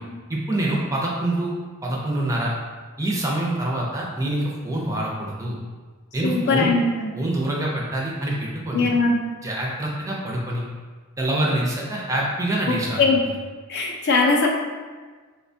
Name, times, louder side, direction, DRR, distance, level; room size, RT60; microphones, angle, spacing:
voice 1, 0.3-1.5 1.8-2.5 3.0-5.6 6.1-6.7 7.1-8.9 9.4-10.6 11.2-13.0, right 1 dB, 15° right, -3 dB, 0.4 m, -25 dB
voice 2, 6.2-7.1 8.7-9.2 12.7-13.2 13.7-14.5, left 3 dB, 55° left, 0 dB, 0.4 m, -20 dB
4.2 x 2.2 x 2.6 m, 1.4 s
head